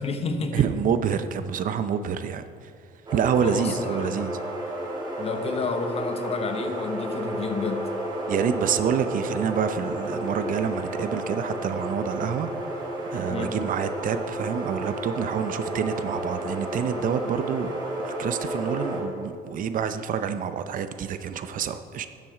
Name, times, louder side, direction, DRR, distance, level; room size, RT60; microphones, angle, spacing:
voice 1, 0.0-0.6 3.4-4.2 5.2-7.9 13.3-13.5, left 4 dB, 35° left, 7 dB, 0.9 m, -30 dB
voice 2, 0.5-2.4 3.1-4.3 8.3-12.8 13.1-17.8 18.0-22.1, right 7 dB, 55° right, 10 dB, 0.6 m, -27 dB
sound 1, 3.1-19.0, right 1 dB, 25° right, 2.7 m, -32 dB
12.0 x 7.5 x 4.9 m, 2.2 s
cardioid pair, 110°, 17 cm